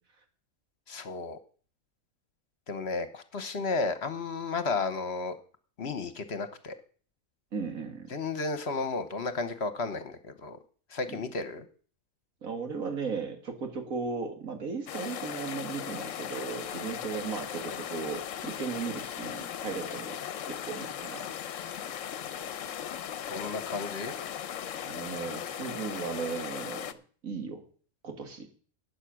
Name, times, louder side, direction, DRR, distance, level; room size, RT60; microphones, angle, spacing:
voice 1, 0.9-1.4 2.7-5.4 5.8-6.8 8.1-10.6 10.9-11.6 23.3-24.1, left 3 dB, 55° left, 10 dB, 1.3 m, -33 dB
voice 2, 7.5-8.1 11.1-11.2 12.4-20.2 20.5-21.3 24.8-27.0 27.2-27.6 28.0-28.5, right 5 dB, 80° right, 5 dB, 2.3 m, -36 dB
sound 1, 14.9-26.9, left 9 dB, 70° left, 1.1 m, -38 dB
11.5 x 8.4 x 6.3 m, 0.43 s
omnidirectional pair, 1.4 m